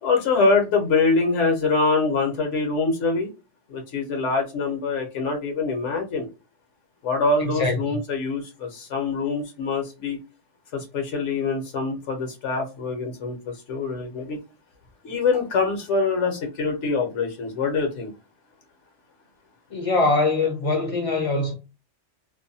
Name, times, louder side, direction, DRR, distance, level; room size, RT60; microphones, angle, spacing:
voice 1, 0.0-3.3 3.7-6.3 7.0-10.2 10.7-14.4 15.0-18.1, left 4 dB, 75° left, 1.1 m, -24 dB
voice 2, 7.4-8.0 19.7-21.5, left 3 dB, 35° left, 0.6 m, -23 dB
2.6 x 2.1 x 2.6 m
omnidirectional pair, 1.3 m